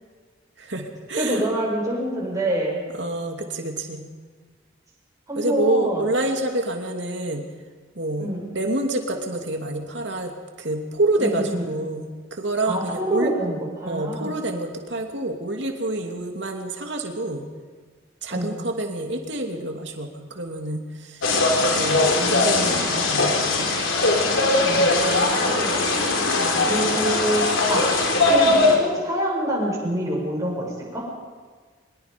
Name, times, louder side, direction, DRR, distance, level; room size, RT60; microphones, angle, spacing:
voice 1, 0.6-1.5 2.9-4.1 5.3-7.5 8.0-10.3 10.6-13.3 13.9-17.5 18.2-21.3 21.6-23.8 26.4-26.7, right 2 dB, 60° right, 3 dB, 2.7 m, -27 dB
voice 2, 1.2-2.8 5.3-6.1 8.2-8.5 11.2-11.6 12.7-14.4 18.3-18.5 22.2-22.8 24.6-26.0 26.6-27.4 27.7-27.8 28.1-28.5 28.8-31.0, right 1 dB, 15° right, -4 dB, 7.2 m, -26 dB
sound 1, 21.2-28.8, left 2 dB, 85° left, 3.9 m, -20 dB
23.5 x 22.0 x 5.3 m, 1.5 s
head